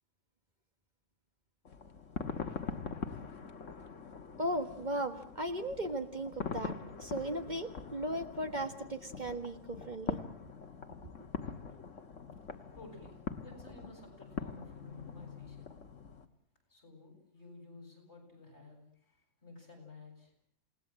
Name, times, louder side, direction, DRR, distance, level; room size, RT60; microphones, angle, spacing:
sound 1, 1.6-16.3, left 5 dB, 80° left, 1.9 m, -43 dB
voice 1, 4.4-10.2, right 1 dB, 35° right, 7 dB, 1.7 m, -37 dB
voice 2, 12.7-15.7 16.7-20.3, left 2 dB, 60° left, 3 dB, 8.5 m, -54 dB
28.5 x 19.5 x 7.6 m, 0.62 s
omnidirectional pair, 1.3 m